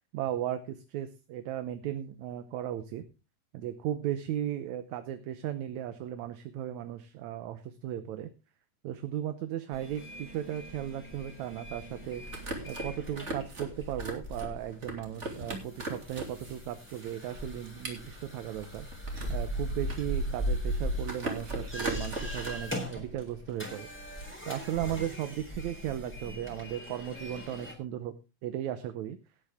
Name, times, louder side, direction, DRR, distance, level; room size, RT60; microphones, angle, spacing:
voice 1, 0.1-3.0 3.5-8.3 8.8-12.2 12.7-18.9 19.3-23.9 24.5-28.2 28.4-29.2, right 11 dB, 70° right, 10 dB, 2.0 m, -36 dB
sound 1, 9.7-27.7, equal, 5° left, 3.6 m, -39 dB
sound 2, 12.0-16.6 16.9-19.4 19.8-20.7 21.0-22.5, right 2 dB, 20° right, 2.8 m, -39 dB
18.0 x 8.7 x 3.6 m, 0.29 s
omnidirectional pair, 3.7 m